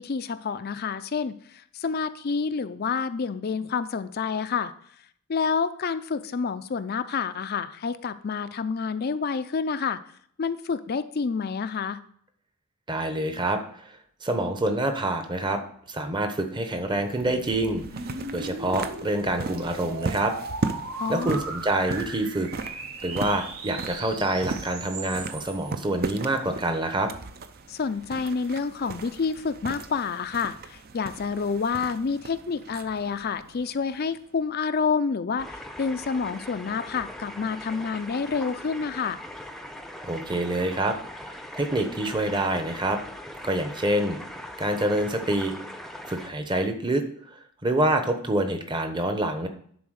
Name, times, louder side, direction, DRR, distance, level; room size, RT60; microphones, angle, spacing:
voice 1, 0.0-4.7 5.3-10.0 10.4-12.0 21.0-21.4 27.7-39.2, left 5 dB, 45° left, 12 dB, 0.4 m, -28 dB
voice 2, 12.9-13.6 14.2-15.6 15.9-17.8 18.3-20.3 21.1-22.5 23.0-27.1 40.0-41.0 41.5-43.0 43.4-44.2 44.6-45.6 46.1-47.0 47.3-49.5, right 1 dB, 20° right, 6 dB, 0.9 m, -26 dB
sound 1, 16.4-25.7, right 3 dB, 85° right, 1.4 m, -38 dB
sound 2, 16.7-34.4, right 3 dB, 45° right, 0.6 m, -37 dB
sound 3, 35.4-46.3, left 1 dB, ahead, 0.6 m, -41 dB
10.5 x 4.0 x 6.4 m, 0.62 s
head